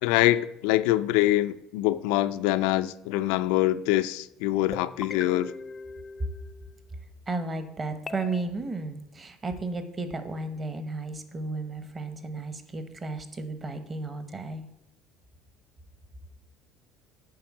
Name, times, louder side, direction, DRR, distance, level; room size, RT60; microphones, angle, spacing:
voice 1, 0.0-5.5, left 15 dB, 85° left, 0.4 m, -24 dB
sound 1, 4.7-6.9 8.1-8.4, left 4 dB, 20° left, 0.4 m, -40 dB
voice 2, 7.3-14.7, right 3 dB, 20° right, 0.9 m, -34 dB
7.5 x 5.2 x 7.2 m
cardioid pair, 150°, 0 cm